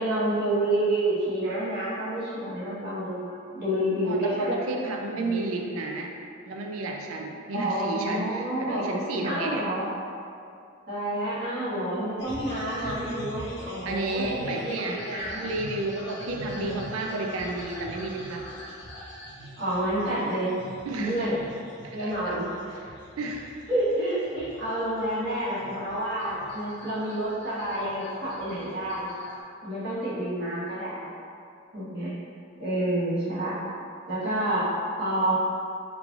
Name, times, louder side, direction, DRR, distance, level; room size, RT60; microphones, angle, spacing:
voice 1, 0.0-4.5 5.1-5.4 7.5-8.9 9.2-9.9 10.9-15.5 16.3-16.8 19.6-20.6 21.0-21.4 21.9-22.5 23.7-29.2 29.6-31.1 31.7-32.1 32.6-33.6 34.1-34.7 35.0-35.3, right 1 dB, 50° right, -10 dB, 1.1 m, -29 dB
voice 2, 4.0-6.1 6.4-9.6 13.9-15.0 15.4-18.5 20.8-21.2 21.8-22.4 22.7-23.5, right 2 dB, 80° right, 1 dB, 0.4 m, -32 dB
sound 1, 12.2-29.4, equal, 55° left, 0.8 m, -44 dB
3.6 x 3.2 x 2.4 m, 2.4 s
head